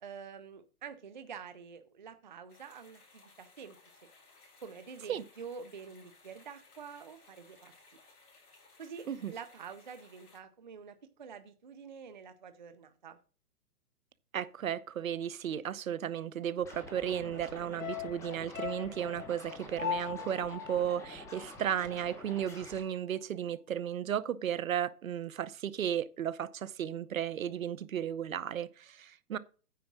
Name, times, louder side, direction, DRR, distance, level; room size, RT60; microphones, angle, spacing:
voice 1, 0.0-3.8 4.6-7.7 8.8-13.2, right 6 dB, 35° right, 0.5 m, -47 dB
sound 1, 2.5-10.4, left 3 dB, 75° left, 4.3 m, -61 dB
voice 2, 14.3-29.4, right 9 dB, 65° right, 0.8 m, -34 dB
Scratching (performance technique), 16.6-22.8, left 1 dB, 5° left, 1.5 m, -48 dB
sound 2, 17.8-22.2 22.5-22.6, left 9 dB, 55° left, 1.6 m, -40 dB
9.3 x 4.9 x 6.0 m
hypercardioid pair, 160°, 45 cm